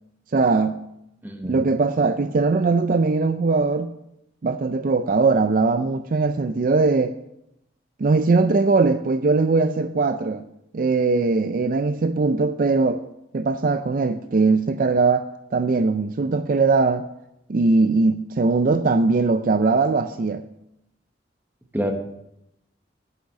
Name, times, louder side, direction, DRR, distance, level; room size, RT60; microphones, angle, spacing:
voice 1, 0.3-0.8 1.4-3.9 4.4-7.1 8.0-10.4 10.7-13.0 13.3-17.1 17.5-20.4, right 3 dB, 45° right, 10 dB, 0.4 m, -20 dB
voice 2, 1.2-1.6 21.7-21.9, equal, 10° right, 4 dB, 1.1 m, -27 dB
9.4 x 6.6 x 7.2 m, 0.83 s
head